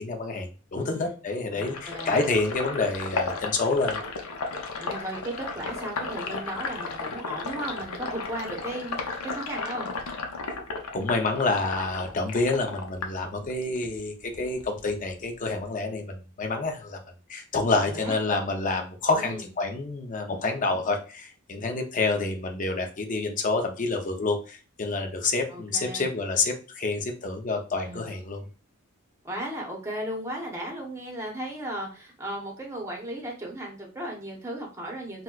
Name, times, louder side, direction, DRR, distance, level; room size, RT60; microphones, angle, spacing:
voice 1, 0.0-4.0 10.9-17.0 17.3-28.5, left 3 dB, 40° left, 4 dB, 0.6 m, -28 dB
voice 2, 0.8-1.2 1.5-2.2 4.8-9.9 17.7-18.2 19.1-19.4 25.5-26.1 27.8-28.1 29.2-35.2, right 1 dB, 15° right, -1 dB, 0.8 m, -36 dB
Sink (filling or washing), 1.6-13.9 14.2-15.6, left 4 dB, 85° left, 0.6 m, -34 dB
4.0 x 2.2 x 2.3 m, 0.36 s
head